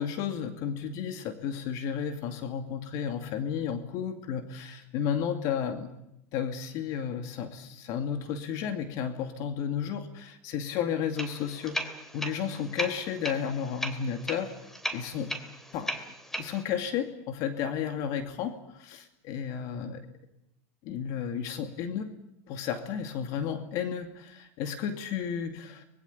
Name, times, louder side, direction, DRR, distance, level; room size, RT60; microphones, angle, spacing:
voice 1, 0.0-5.9 6.3-14.5 14.9-15.3 15.7-15.9 16.4-20.0 20.8-22.1 22.5-25.9, left 8 dB, 60° left, 7 dB, 2.4 m, -33 dB
sound 1, 11.1-16.6, equal, 5° left, 2.9 m, -37 dB
24.0 x 21.0 x 8.4 m, 0.86 s
supercardioid pair, 115°, 7 cm